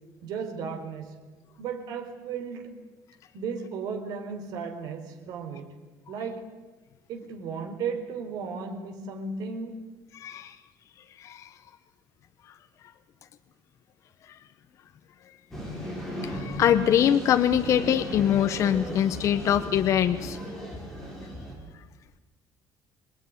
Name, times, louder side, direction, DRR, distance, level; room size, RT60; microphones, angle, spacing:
voice 1, 0.2-1.2 1.6-2.7 3.3-5.7 6.1-6.4 7.1-9.8, right 5 dB, 65° right, 5 dB, 4.5 m, -35 dB
voice 2, 10.2-10.5 11.2-11.5 16.2-20.4, left 10 dB, 45° left, 9 dB, 1.0 m, -23 dB
sound 1, 15.5-21.5, equal, 5° left, 7.8 m, -36 dB
26.5 x 21.0 x 9.8 m, 1.2 s
cardioid pair, 170°, 7 cm